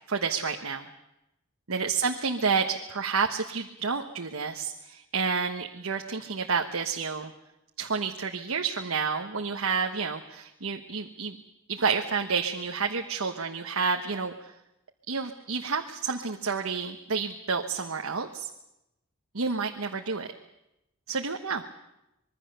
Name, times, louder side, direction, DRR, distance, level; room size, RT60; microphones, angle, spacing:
voice 1, 0.1-0.9 1.7-7.3 7.8-11.4 11.7-14.5 15.1-18.5 19.3-20.3 21.1-21.7, right 5 dB, 85° right, 3 dB, 1.3 m, -30 dB
25.5 x 22.0 x 6.8 m, 0.89 s
head